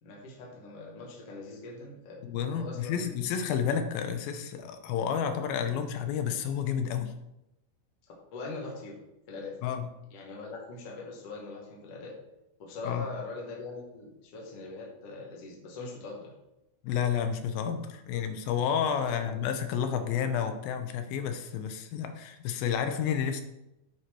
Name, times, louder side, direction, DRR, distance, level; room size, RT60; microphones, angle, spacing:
voice 1, 0.0-3.4 8.3-9.0 9.3-9.6 10.1-12.2 12.6-16.3 18.1-18.2 18.9-19.4, left 3 dB, 55° left, -2 dB, 2.1 m, -42 dB
voice 2, 2.2-7.1 9.6-9.9 12.9-13.1 16.8-23.4, left 8 dB, 90° left, 8 dB, 2.5 m, -30 dB
9.6 x 4.5 x 4.4 m, 0.89 s
omnidirectional pair, 4.2 m